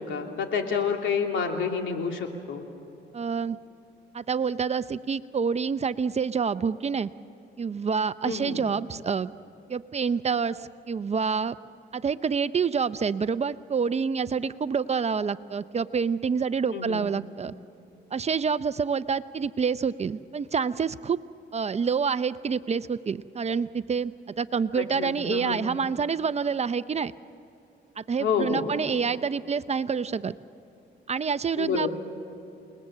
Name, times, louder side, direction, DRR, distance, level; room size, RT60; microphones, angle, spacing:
voice 1, 0.0-2.6 8.2-8.6 16.7-17.0 24.8-25.6 28.2-28.7 31.6-31.9, left 6 dB, 75° left, 3 dB, 2.9 m, -28 dB
voice 2, 3.1-3.6 4.1-7.1 7.6-9.3 9.7-11.6 11.9-17.5 18.1-21.2 21.5-27.1 28.0-30.3 31.1-31.9, right 6 dB, 35° right, 14 dB, 0.6 m, -27 dB
28.5 x 20.5 x 7.6 m, 2.8 s
cardioid pair, 90°, 20 cm